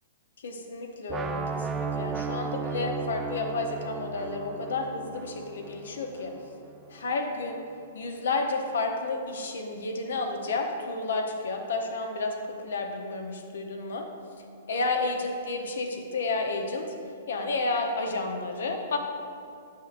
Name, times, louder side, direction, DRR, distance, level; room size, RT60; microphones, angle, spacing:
voice 1, 0.4-6.3 6.9-7.6 7.9-14.1 14.7-16.9 17.3-19.0, left 3 dB, 75° left, 3 dB, 0.8 m, -31 dB
sound 1, 1.1-7.0, right 5 dB, 15° right, 0.4 m, -35 dB
7.8 x 5.5 x 2.5 m, 2.4 s
hypercardioid pair, 120°, 0 cm